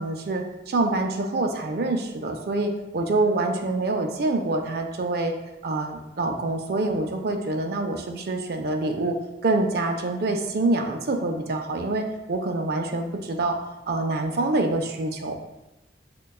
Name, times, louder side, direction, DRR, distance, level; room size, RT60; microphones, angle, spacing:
voice 1, 0.0-5.3 5.6-9.2 9.4-13.6 13.9-15.4, right 2 dB, 55° right, 4 dB, 0.4 m, -26 dB
6.3 x 2.2 x 2.2 m, 1.0 s
head